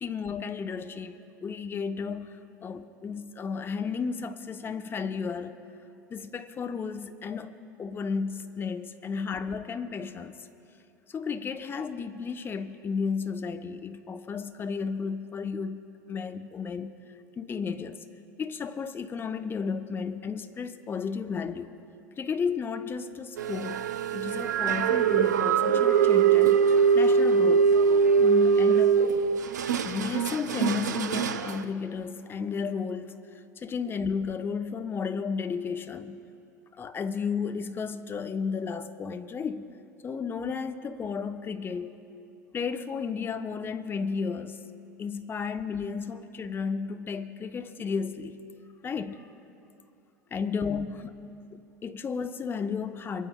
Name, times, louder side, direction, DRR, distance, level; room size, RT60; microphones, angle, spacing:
voice 1, 0.0-5.6 6.1-10.4 11.1-17.0 17.4-18.0 18.4-21.8 22.2-27.8 28.2-29.0 29.8-33.2 33.6-36.2 36.8-39.7 40.0-42.1 42.5-44.6 45.0-48.4 48.8-49.3 50.3-51.1 51.8-53.3, left 5 dB, 20° left, 0.8 m, -33 dB
sound 1, 23.4-31.6, right 6 dB, 70° right, 0.6 m, -22 dB
27.0 x 14.0 x 2.2 m
figure-of-eight pair, 80°, 10 cm